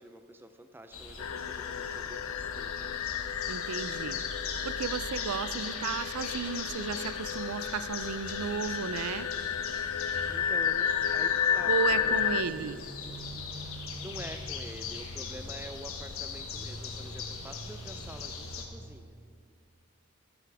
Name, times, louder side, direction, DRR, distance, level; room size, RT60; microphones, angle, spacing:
voice 1, 0.0-3.0 10.3-12.2 12.5-13.2 13.5-19.1, right 1 dB, 10° right, 9 dB, 0.4 m, -47 dB
sound 1, 0.9-18.7, left 4 dB, 70° left, 1.2 m, -40 dB
sound 2, 1.2-12.4, left 8 dB, 90° left, 0.4 m, -32 dB
voice 2, 3.5-4.2 4.6-9.3 11.7-12.8, right 6 dB, 85° right, 14 dB, 0.4 m, -34 dB
13.0 x 12.0 x 3.5 m, 2.4 s
head